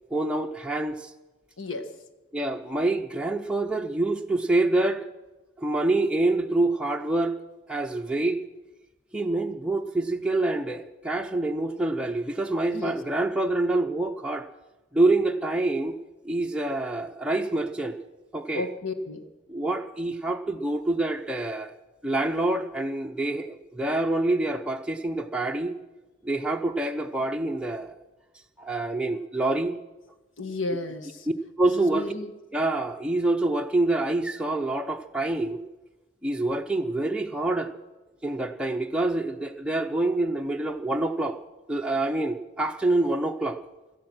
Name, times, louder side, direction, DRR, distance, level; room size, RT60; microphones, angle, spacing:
voice 1, 0.1-1.1 2.3-5.1 5.6-7.4 7.7-8.4 9.1-14.5 14.9-16.0 16.2-18.0 18.3-18.7 19.5-21.7 22.0-25.8 26.2-27.9 28.6-29.8 31.6-32.1 32.5-35.6 36.2-37.7 38.2-41.4 41.7-43.6, right 2 dB, 5° right, 2 dB, 0.6 m, -26 dB
voice 2, 1.6-1.9 12.7-13.0 18.5-19.3 30.4-31.3 31.6-32.3, left 2 dB, 90° left, 8 dB, 1.6 m, -33 dB
17.5 x 13.0 x 6.1 m, 1.1 s
head